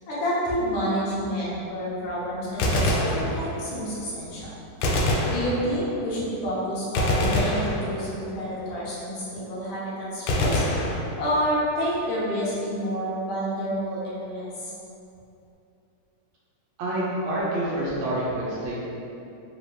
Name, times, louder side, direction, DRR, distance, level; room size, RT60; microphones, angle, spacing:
voice 1, 0.1-4.5 5.1-10.6 11.2-14.7, equal, 65° left, -8 dB, 1.5 m, -29 dB
Gunshot gunfire, 2.5-3.8 4.8-6.0 7.0-8.4 10.3-11.6, left 1 dB, 80° left, 1.8 m, -25 dB
voice 2, 16.8-18.7, right 1 dB, 70° right, -7 dB, 1.6 m, -27 dB
4.8 x 2.8 x 3.3 m, 2.8 s
omnidirectional pair, 3.7 m